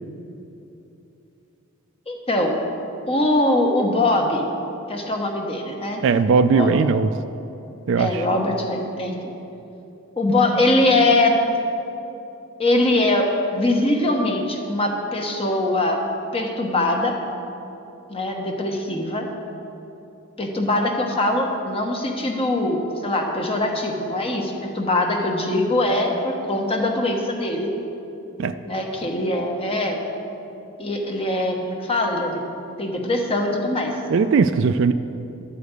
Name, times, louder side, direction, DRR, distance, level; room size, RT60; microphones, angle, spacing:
voice 1, 2.1-2.6 3.1-4.5 4.9-6.0 6.5-6.7 8.0-9.2 10.2-11.4 12.6-16.0 16.3-17.1 18.1-19.3 20.4-27.7 28.6-30.0 30.8-32.4 32.8-33.9, left 1 dB, 25° left, 2 dB, 1.1 m, -22 dB
voice 2, 6.0-7.1 7.9-8.1 28.4-28.5 34.1-34.9, right 5 dB, 60° right, 11 dB, 0.3 m, -18 dB
11.5 x 5.0 x 8.1 m, 2.9 s
head